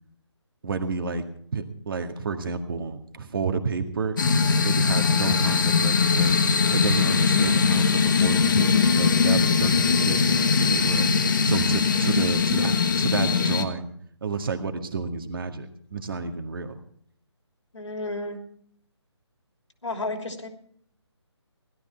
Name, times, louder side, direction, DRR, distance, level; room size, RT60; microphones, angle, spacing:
voice 1, 0.6-1.2 1.5-4.2 4.6-6.4 6.7-11.1 11.4-13.9 14.2-16.8, right 5 dB, 50° right, 7 dB, 1.8 m, -30 dB
sound 1, 4.2-13.6, left 5 dB, 45° left, 1.3 m, -21 dB
voice 2, 17.7-18.4 19.8-20.5, left 2 dB, 85° left, 5 dB, 3.0 m, -32 dB
17.0 x 12.5 x 4.5 m, 0.64 s
figure-of-eight pair, 160°, 15 cm